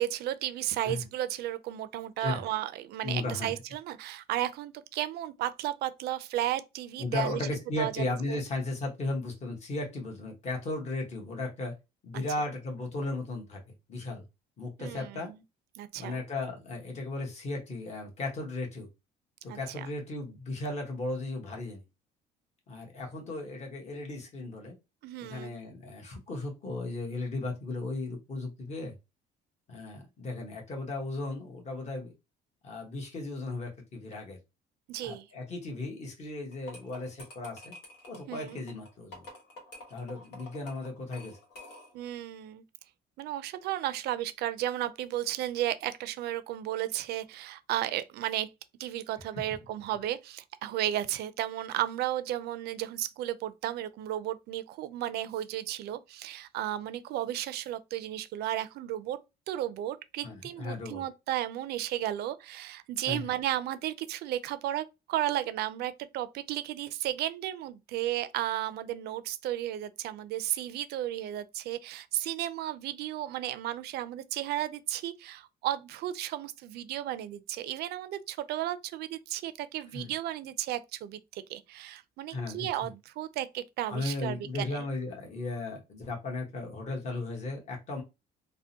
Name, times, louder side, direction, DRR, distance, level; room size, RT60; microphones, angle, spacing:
voice 1, 0.0-7.4 7.8-8.4 12.1-12.2 14.8-15.4 15.8-16.2 19.5-19.9 25.0-25.6 34.9-35.2 38.3-38.6 41.9-42.6 43.2-48.5 48.8-59.2 59.5-84.8, right 13 dB, 70° right, 0.4 m, -34 dB
voice 2, 3.0-3.6 7.0-11.7 12.0-13.6 13.9-14.2 14.6-15.3 15.9-18.9 19.4-21.8 22.7-24.7 25.3-28.9 29.7-32.1 32.6-34.4 35.0-37.7 38.1-39.2 39.9-41.4 60.2-61.0 63.1-63.2 79.9-80.1 82.3-82.7 83.9-88.0, left 2 dB, 40° left, 1.2 m, -36 dB
sound 1, 36.5-42.1, left 1 dB, 85° left, 1.3 m, -49 dB
3.5 x 2.1 x 2.7 m
cardioid pair, 110°, 17 cm